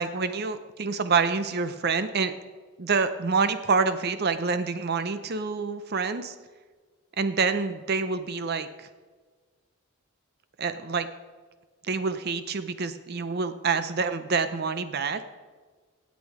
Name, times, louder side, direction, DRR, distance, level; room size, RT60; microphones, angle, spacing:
voice 1, 0.0-2.3 2.8-6.4 7.2-8.9 10.6-11.1 11.9-15.2, right 4 dB, 45° right, 11 dB, 0.5 m, -27 dB
17.0 x 8.3 x 4.8 m, 1.4 s
head